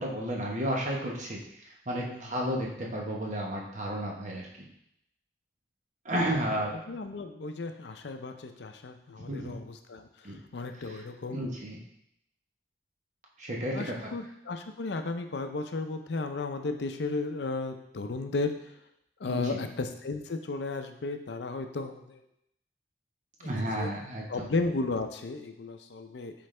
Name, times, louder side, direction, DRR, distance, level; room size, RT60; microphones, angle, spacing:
voice 1, 0.0-4.5 6.0-6.8 9.3-9.6 10.2-10.4 10.8-11.0 11.3-11.8 13.4-14.1 19.2-19.6 23.4-24.5, equal, 40° right, -1 dB, 1.1 m, -32 dB
voice 2, 6.9-11.4 13.7-18.7 19.2-22.2 23.4-23.5 23.7-23.9 24.3-26.3, left 3 dB, 70° left, 7 dB, 0.5 m, -34 dB
7.7 x 3.9 x 3.3 m, 0.77 s
head